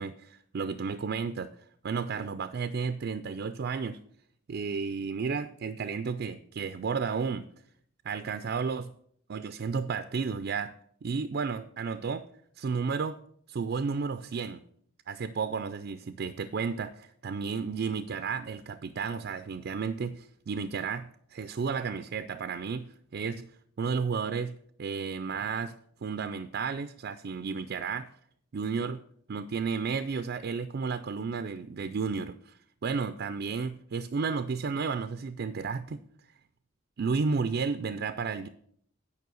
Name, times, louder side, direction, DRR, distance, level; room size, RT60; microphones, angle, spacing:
voice 1, 0.0-1.5 1.8-4.0 4.5-7.5 8.0-8.9 9.3-10.7 11.0-12.2 12.6-13.2 13.5-14.6 15.1-22.9 23.1-23.5 23.8-25.7 26.0-28.1 28.5-29.0 29.3-36.0 37.0-38.5, right 5 dB, 55° right, 10 dB, 0.4 m, -32 dB
9.4 x 5.3 x 6.2 m, 0.64 s
head